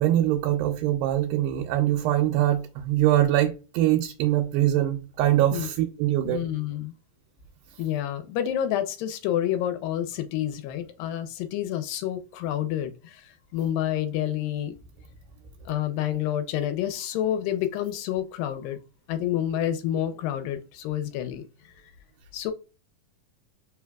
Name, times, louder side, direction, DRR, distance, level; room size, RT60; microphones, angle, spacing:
voice 1, 0.0-6.4, right 13 dB, 90° right, 2.4 m, -23 dB
voice 2, 6.3-6.9 7.8-13.2 13.5-14.7 15.7-18.8 19.1-21.4 22.3-22.5, left 11 dB, 85° left, 2.3 m, -28 dB
5.0 x 3.3 x 2.3 m
omnidirectional pair, 4.0 m